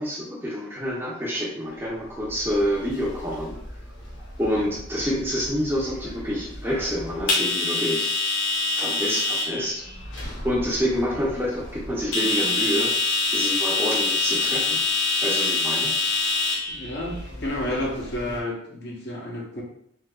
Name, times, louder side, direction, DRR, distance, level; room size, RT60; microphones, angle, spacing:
voice 1, 0.0-3.6 4.4-8.1 8.7-9.8 10.1-12.9 13.3-14.9 15.2-15.9, equal, 10° right, -4 dB, 0.6 m, -27 dB
sound 1, 2.3-18.4, left 3 dB, 85° left, 0.8 m, -27 dB
voice 2, 16.7-19.6, left 1 dB, 60° left, -1 dB, 0.8 m, -31 dB
3.6 x 2.8 x 2.2 m, 0.69 s
head